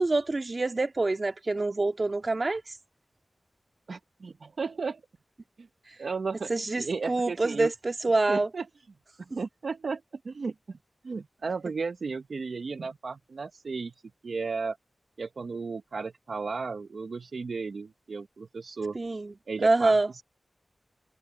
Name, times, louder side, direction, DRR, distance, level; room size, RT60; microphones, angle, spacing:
voice 1, 0.0-2.7 6.5-8.5 18.9-19.3 19.6-20.1, right 2 dB, 50° right, 2.0 m, -26 dB
voice 2, 3.9-5.0 5.6-5.7 6.0-6.5 6.8-7.7 8.3-8.7 9.3-10.8 11.0-13.9 14.2-14.8 15.2-19.0 19.5-20.2, right 4 dB, 75° right, 0.9 m, -34 dB
cardioid pair, 45°, 0 cm